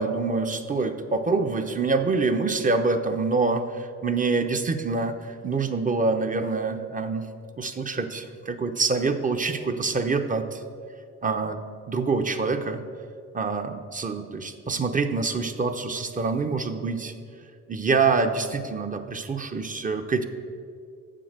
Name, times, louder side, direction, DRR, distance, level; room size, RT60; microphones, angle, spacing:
voice 1, 0.0-7.3 7.6-10.6 11.2-11.6 11.9-12.8 13.3-17.1 17.7-20.3, right 4 dB, 25° right, 7 dB, 0.7 m, -26 dB
7.6 x 7.1 x 6.7 m, 2.2 s
cardioid pair, 90°, 30 cm